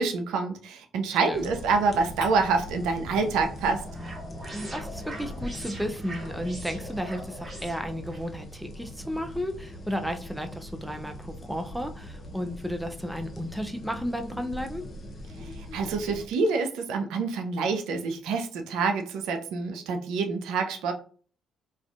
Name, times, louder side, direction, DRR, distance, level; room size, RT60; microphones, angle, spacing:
voice 1, 0.0-3.8 15.7-20.9, right 4 dB, 70° right, 5 dB, 0.3 m, -27 dB
sound 1, 1.3-16.2, left 1 dB, 40° left, 0.6 m, -41 dB
sound 2, 2.2-3.9 4.2-6.6, left 3 dB, 80° left, 0.7 m, -49 dB
sound 3, 3.3-8.3, right 1 dB, 30° right, 1.1 m, -43 dB
voice 2, 4.5-14.8, equal, 5° right, 6 dB, 0.4 m, -33 dB
2.4 x 2.2 x 2.4 m, 0.42 s
hypercardioid pair, 45°, 0 cm